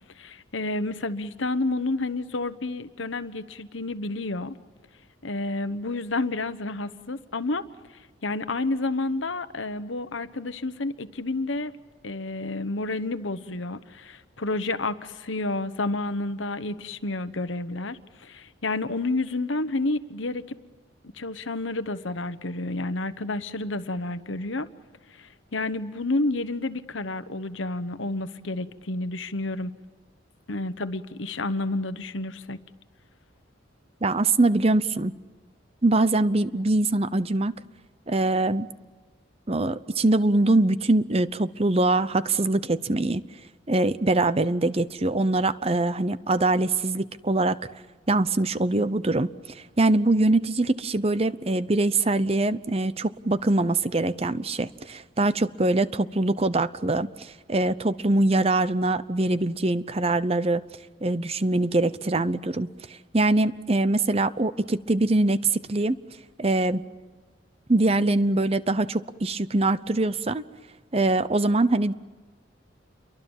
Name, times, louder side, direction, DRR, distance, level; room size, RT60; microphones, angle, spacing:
voice 1, 0.2-4.5 5.2-7.7 8.2-11.7 12.0-20.5 21.1-24.7 25.2-29.7 30.5-32.6, left 2 dB, 80° left, 11 dB, 1.3 m, -30 dB
voice 2, 34.0-35.1 35.8-37.5 38.1-38.7 39.5-43.2 43.7-47.6 48.1-49.3 49.5-60.6 61.0-66.0 66.4-66.8 67.7-70.4 70.9-71.9, right 2 dB, 30° right, 14 dB, 0.8 m, -23 dB
29.0 x 23.5 x 7.3 m, 1.3 s
head